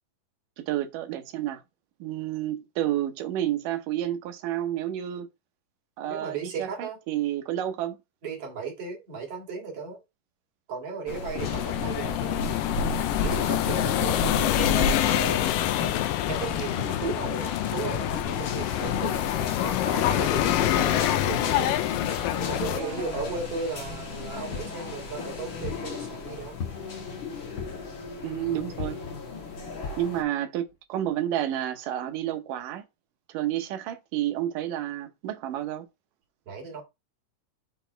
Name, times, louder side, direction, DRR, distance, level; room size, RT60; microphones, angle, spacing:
voice 1, 0.6-1.6 2.0-5.3 6.0-8.0 22.8-23.0 28.2-29.0 30.0-32.8 33.3-35.9, right 12 dB, 80° right, 2.5 m, -30 dB
voice 2, 6.1-7.0 8.2-10.0 10.7-12.4 13.2-15.5 16.2-19.2 19.6-21.8 22.4-26.6 36.5-36.8, right 4 dB, 50° right, 2.8 m, -35 dB
sound 1, 11.1-30.2, left 3 dB, 45° left, 1.9 m, -35 dB
sound 2, 11.4-22.8, left 13 dB, 90° left, 2.3 m, -26 dB
sound 3, 24.5-24.8 25.6-25.9 26.6-27.0 27.6-27.9 28.8-29.1 29.8-30.1 30.7-30.8 31.1-31.2, left 5 dB, 70° left, 1.3 m, -36 dB
5.9 x 4.1 x 4.4 m
omnidirectional pair, 3.8 m